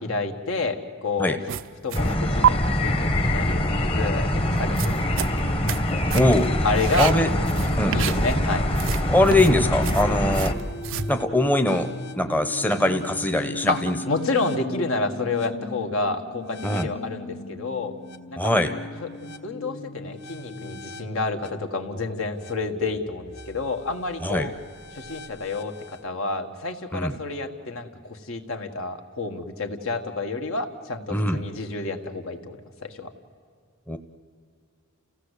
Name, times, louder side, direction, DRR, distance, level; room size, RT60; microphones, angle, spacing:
voice 1, 0.0-1.4 1.8-5.0 5.3-5.5 6.6-7.2 7.9-8.7 13.7-13.8 14.1-17.9 18.3-18.5 19.4-24.5 24.9-33.1, left 3 dB, 75° left, 5 dB, 1.8 m, -29 dB
sound 1, 1.5-2.1 2.4-2.5 4.6-5.9 6.1-6.5 6.7-8.5 8.7-11.1, right 9 dB, 65° right, 0.5 m, -28 dB
sound 2, 1.9-10.5, left 1 dB, 25° left, 1.2 m, -24 dB
voice 2, 6.1-6.6 7.0-7.3 7.8-8.0 9.1-10.6 11.1-11.9 12.2-13.9 16.6-16.9 18.4-18.7 24.2-24.5 26.9-27.1 31.1-31.4 33.9-34.0, left 1 dB, 10° left, 7 dB, 0.8 m, -22 dB
sound 3, 6.3-26.0, left 2 dB, 55° left, 1.0 m, -39 dB
30.0 x 16.0 x 8.3 m, 2.2 s
head